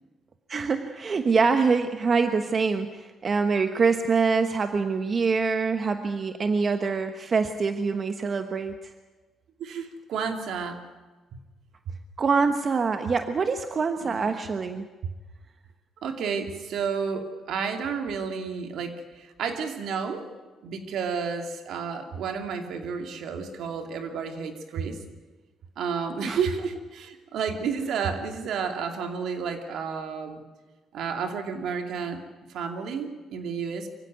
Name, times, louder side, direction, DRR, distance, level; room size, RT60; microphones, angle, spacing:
voice 1, 0.5-8.8 12.2-14.9 26.2-26.4, right 4 dB, 40° right, 8 dB, 1.1 m, -25 dB
voice 2, 9.6-10.8 14.0-14.3 16.0-20.3 20.6-25.0 25.8-30.4 30.9-32.2 32.5-33.9, right 6 dB, 75° right, 5 dB, 2.6 m, -31 dB
24.0 x 16.0 x 9.4 m, 1.3 s
cardioid pair, 90°, 0 cm